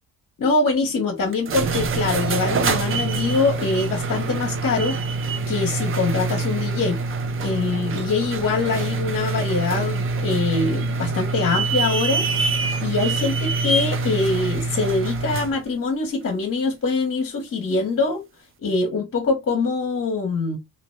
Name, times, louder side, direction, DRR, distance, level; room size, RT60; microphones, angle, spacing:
voice 1, 0.4-5.0 5.5-7.0 7.4-12.3 12.8-18.2 18.6-20.6, left 3 dB, 40° left, 0.8 m, -23 dB
sound 1, 1.3-15.6, right 3 dB, 35° right, 0.4 m, -25 dB
2.8 x 2.1 x 3.0 m
cardioid pair, 125°, 36 cm